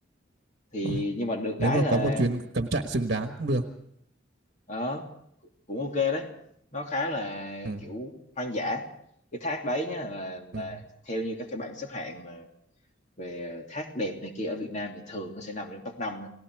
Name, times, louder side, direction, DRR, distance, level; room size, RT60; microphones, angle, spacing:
voice 1, 0.7-2.3 4.7-5.1 5.7-6.3 6.7-8.8 9.3-12.5 13.2-16.3, left 1 dB, 35° left, 2 dB, 2.9 m, -32 dB
voice 2, 1.6-3.6 7.6-7.8 10.5-10.8, right 2 dB, 55° right, 5 dB, 1.4 m, -27 dB
30.0 x 19.5 x 4.8 m, 0.70 s
head